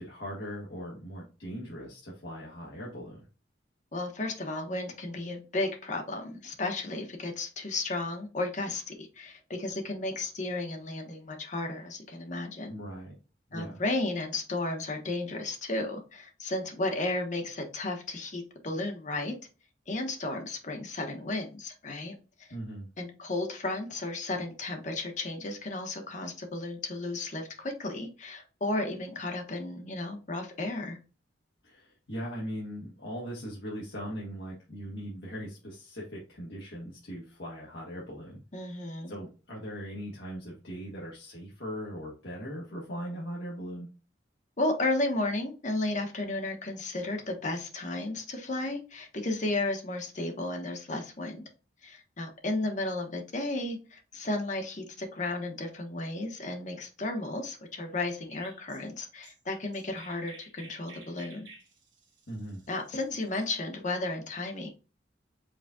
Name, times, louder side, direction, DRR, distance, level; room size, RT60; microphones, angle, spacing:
voice 1, 0.0-3.2 12.7-13.2 13.5-13.8 22.5-22.9 31.6-38.8 39.1-43.9 62.3-62.6, equal, 60° left, -5 dB, 1.4 m, -40 dB
voice 2, 3.9-12.7 13.5-19.4 19.9-22.5 23.0-31.0 38.5-39.1 44.6-51.5 51.8-61.5 62.7-64.7, left 2 dB, 40° left, 4 dB, 1.1 m, -33 dB
Chirp tweet, 58.3-63.4, right 3 dB, 75° right, 1.4 m, -53 dB
5.0 x 4.0 x 2.3 m, 0.33 s
head